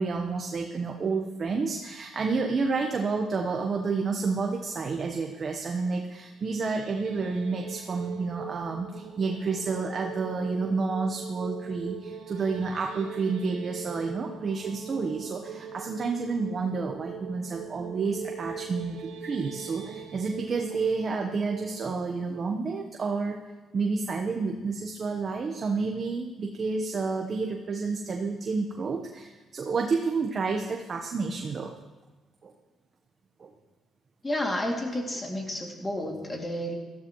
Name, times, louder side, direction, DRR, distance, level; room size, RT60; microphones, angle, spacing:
voice 1, 0.0-23.4 23.7-31.7 32.4-32.5 33.4-33.5 36.0-36.1, right 4 dB, 45° right, 2 dB, 1.1 m, -30 dB
sound 1, 6.3-23.4, right 7 dB, 85° right, 1.0 m, -41 dB
voice 2, 34.2-36.8, left 1 dB, 20° left, 1 dB, 2.5 m, -31 dB
16.5 x 13.0 x 3.1 m, 1.2 s
cardioid pair, 90°, 0 cm